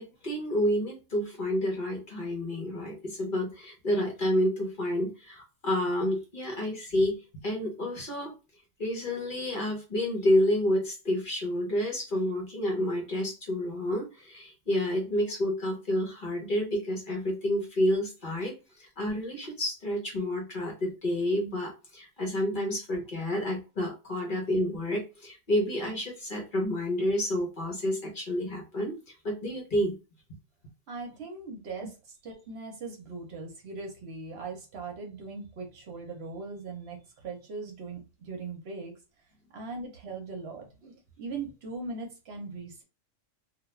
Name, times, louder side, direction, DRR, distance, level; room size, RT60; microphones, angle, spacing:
voice 1, 0.0-7.2 7.4-8.3 8.8-29.0 29.2-29.9, left 1 dB, 45° left, 0.9 m, -29 dB
voice 2, 30.9-39.0 39.5-42.8, right 4 dB, 60° right, 0.8 m, -40 dB
2.3 x 2.3 x 3.0 m
omnidirectional pair, 1.3 m